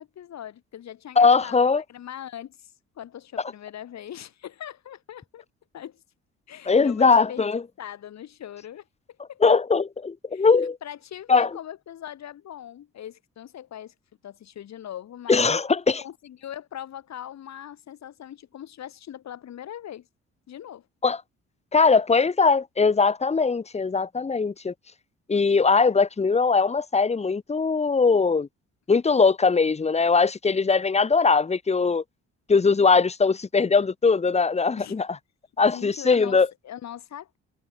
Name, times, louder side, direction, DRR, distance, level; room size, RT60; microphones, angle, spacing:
voice 1, 0.0-1.6 1.9-5.4 5.7-6.0 6.5-8.8 9.3-9.4 10.3-10.5 10.8-13.9 14.2-15.6 16.0-20.1 20.5-20.9 34.8-35.0 35.6-37.4, left 10 dB, 60° left, 2.1 m, -40 dB
voice 2, 1.2-1.8 6.7-7.6 9.4-10.8 11.3-11.5 15.3-16.0 21.0-21.2 21.7-24.7 25.3-28.5 28.9-32.0 32.5-35.1 35.6-36.5, left 4 dB, 20° left, 0.9 m, -20 dB
cardioid pair, 90°, 30 cm